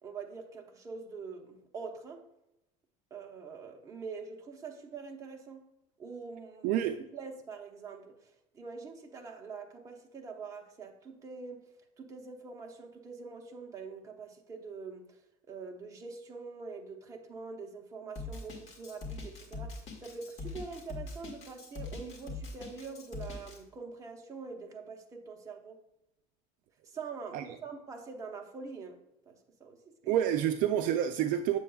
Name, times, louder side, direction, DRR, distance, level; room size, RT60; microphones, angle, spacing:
voice 1, 0.0-2.2 3.1-5.6 6.0-11.6 12.0-15.2 15.5-25.8 26.8-29.0 29.3-30.2, right 4 dB, 20° right, 0.8 m, -44 dB
voice 2, 6.6-7.0 27.3-27.4 30.1-31.6, right 11 dB, 55° right, 0.4 m, -28 dB
Drum kit, 18.2-23.6, left 3 dB, 40° left, 1.6 m, -42 dB
7.5 x 7.0 x 2.3 m
cardioid pair, 160°, 17 cm